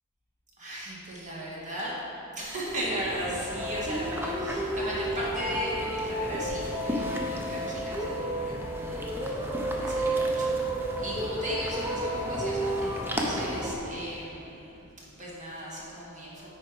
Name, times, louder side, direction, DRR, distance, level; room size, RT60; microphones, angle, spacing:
voice 1, 0.6-2.0 2.3-9.5 9.8-10.6 11.0-16.6, right 1 dB, 35° right, -6 dB, 1.8 m, -37 dB
sound 1, 2.7-13.7, right 1 dB, 10° right, 0.7 m, -31 dB
8.9 x 5.0 x 4.7 m, 2.8 s
head